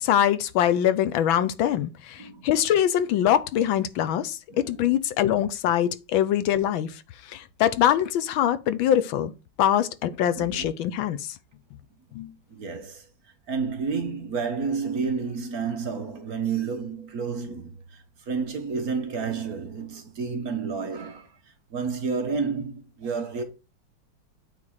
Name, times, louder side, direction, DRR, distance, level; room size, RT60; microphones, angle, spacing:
voice 1, 0.0-6.9 7.3-9.3 9.6-11.3 12.1-12.3, left 10 dB, 80° left, 1.5 m, -23 dB
voice 2, 4.5-4.8 10.3-10.7 12.5-13.1 13.5-21.4 21.7-23.4, right 5 dB, 50° right, 1.6 m, -30 dB
8.6 x 3.7 x 6.3 m
omnidirectional pair, 2.1 m